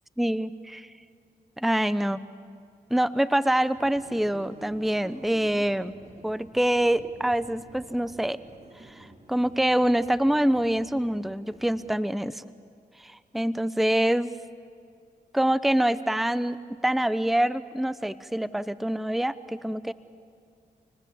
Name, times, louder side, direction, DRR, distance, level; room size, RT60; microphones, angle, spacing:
voice 1, 0.2-0.9 1.6-2.2 2.9-5.9 6.2-8.4 8.8-12.4 13.0-14.3 15.3-19.9, right 1 dB, ahead, 16 dB, 0.8 m, -25 dB
sound 1, 3.7-12.3, right 2 dB, 35° right, 4.3 m, -50 dB
28.0 x 19.5 x 8.6 m, 2.2 s
supercardioid pair, 40°, 18 cm